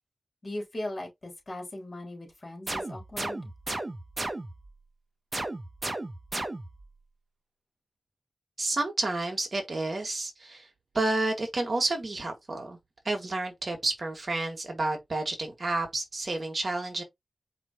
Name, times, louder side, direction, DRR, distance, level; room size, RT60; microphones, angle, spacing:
voice 1, 0.4-3.5, left 1 dB, 40° left, 3.3 m, -38 dB
sound 1, 2.7-4.7 5.3-6.9, right 2 dB, 35° right, 0.9 m, -35 dB
voice 2, 8.6-10.7 10.9-12.8 13.1-17.0, right 2 dB, 50° right, 1.9 m, -30 dB
4.9 x 3.6 x 3.0 m
wide cardioid pair, 65°, 0 cm